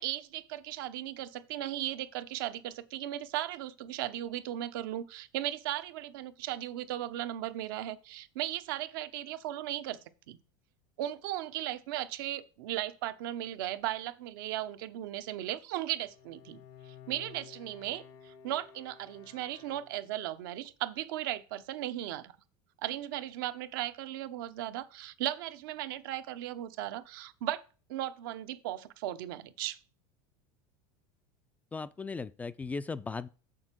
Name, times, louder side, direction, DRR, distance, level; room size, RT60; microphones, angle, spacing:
voice 1, 0.0-10.0 10.3-10.4 11.0-16.6 16.9-22.3 22.8-27.6 27.9-29.8, right 13 dB, 75° right, 0.8 m, -36 dB
Bowed string instrument, 16.0-20.4, left 8 dB, 55° left, 0.8 m, -54 dB
voice 2, 31.7-33.3, left 4 dB, 15° left, 0.3 m, -37 dB
6.7 x 6.2 x 4.5 m
supercardioid pair, 130°, 11 cm